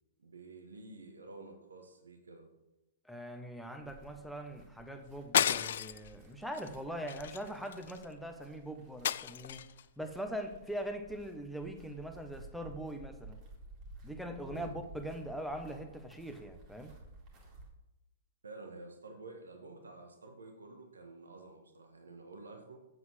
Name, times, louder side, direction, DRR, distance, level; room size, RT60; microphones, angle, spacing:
voice 1, 0.2-2.5 14.4-14.7 18.4-22.8, right 3 dB, 70° right, 4 dB, 1.6 m, -50 dB
voice 2, 3.0-9.6 10.0-13.4 14.0-16.9, right 1 dB, ahead, 4 dB, 1.0 m, -42 dB
sound 1, 3.8-17.7, right 2 dB, 30° right, 2.3 m, -55 dB
sound 2, 5.3-6.1 6.5-6.7 7.1-8.0 9.0-9.8, left 10 dB, 55° left, 0.3 m, -32 dB
7.9 x 7.6 x 6.1 m, 0.98 s
figure-of-eight pair, 110°, 0 cm